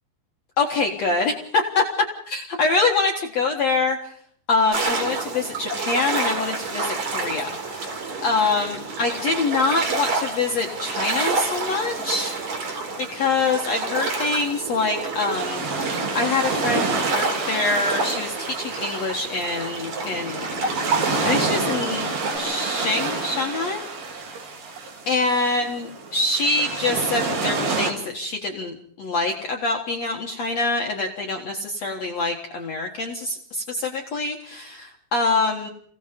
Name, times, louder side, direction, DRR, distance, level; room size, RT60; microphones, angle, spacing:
voice 1, 0.6-1.8 2.3-4.1 4.5-12.4 13.0-15.6 16.1-20.5 21.2-23.8 25.1-35.7, left 3 dB, 80° left, 1 dB, 1.5 m, -25 dB
sound 1, 4.7-22.4, right 3 dB, 40° right, 4.6 m, -29 dB
sound 2, 15.3-27.9, right 3 dB, 55° right, 6.0 m, -29 dB
29.0 x 17.5 x 5.3 m, 0.64 s
omnidirectional pair, 5.7 m